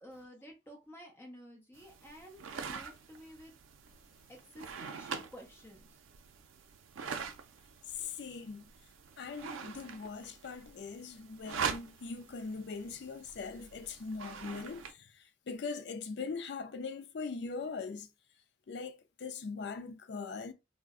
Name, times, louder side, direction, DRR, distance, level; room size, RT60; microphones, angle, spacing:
voice 1, 0.0-3.5 4.3-5.9, equal, 10° left, 0.7 m, -52 dB
sound 1, 1.7-14.9, right 6 dB, 85° right, 0.4 m, -44 dB
voice 2, 8.0-8.6 9.2-15.1 15.5-18.1 18.7-20.5, left 4 dB, 60° left, 0.4 m, -41 dB
2.4 x 2.1 x 3.6 m
head